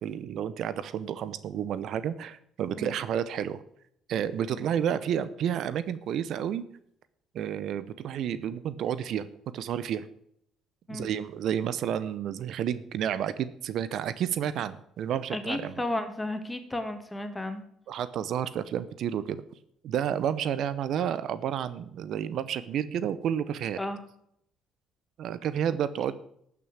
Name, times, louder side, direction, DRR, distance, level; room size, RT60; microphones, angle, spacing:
voice 1, 0.0-3.6 4.1-6.6 7.3-9.3 9.5-10.1 10.9-15.7 17.9-19.4 19.8-23.8 25.2-26.1, right 9 dB, 65° right, 15 dB, 0.7 m, -30 dB
voice 2, 15.3-17.6 23.8-24.0, left 1 dB, 15° left, 7 dB, 2.4 m, -33 dB
12.0 x 6.0 x 8.7 m, 0.71 s
hypercardioid pair, 60°, 0 cm